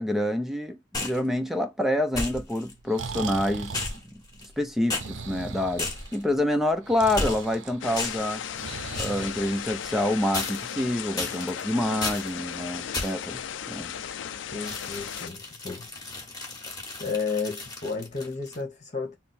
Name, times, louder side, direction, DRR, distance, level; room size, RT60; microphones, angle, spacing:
voice 1, 0.0-3.8 4.4-8.4 9.0-13.4 13.7-13.9, left 1 dB, ahead, 0.5 m, -27 dB
sound 1, 0.9-1.3 2.1-2.7 3.7-4.6 4.9-5.1 5.8-6.2 7.2-7.6 8.0-8.3 8.9-9.2 10.3-10.8 11.2-11.6 12.0-12.3 12.9-13.3 14.6-18.6, left 3 dB, 20° left, 1.4 m, -33 dB
Breathing, 2.7-10.1, right 5 dB, 80° right, 0.6 m, -39 dB
sound 2, 7.8-15.3, left 8 dB, 75° left, 0.4 m, -36 dB
voice 2, 14.5-15.9 17.0-19.2, left 4 dB, 40° left, 1.1 m, -32 dB
3.5 x 2.0 x 4.3 m
head